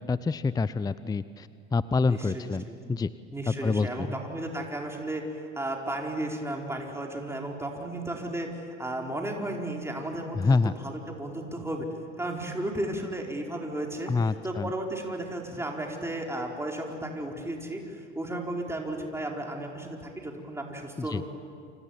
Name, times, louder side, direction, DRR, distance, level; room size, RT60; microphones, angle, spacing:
voice 1, 0.0-3.1 3.5-4.1 10.3-10.7 14.1-14.7 21.0-21.2, left 4 dB, 10° left, 15 dB, 0.6 m, -27 dB
voice 2, 2.0-2.9 3.3-11.9 12.2-21.3, right 1 dB, 5° right, 1 dB, 4.5 m, -34 dB
29.0 x 26.5 x 7.4 m, 2.2 s
figure-of-eight pair, 70°, 35 cm